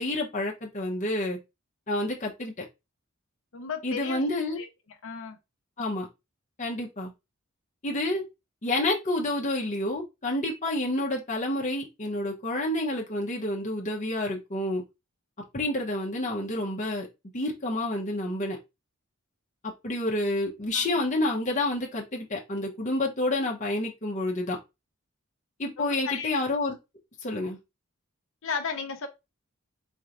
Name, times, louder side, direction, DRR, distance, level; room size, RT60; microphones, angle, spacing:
voice 1, 0.0-1.4 1.9-2.6 3.8-4.6 5.8-6.1 6.6-7.1 7.8-8.2 8.6-14.8 15.5-17.1 17.3-18.6 19.8-24.6 25.6-26.8 27.2-27.6, left 1 dB, 35° left, 0.9 m, -29 dB
voice 2, 3.5-4.2 4.6-4.7 5.0-5.4 20.7-20.9 25.8-26.3 28.4-29.1, left 5 dB, 65° left, 0.8 m, -34 dB
4.3 x 3.1 x 2.5 m
head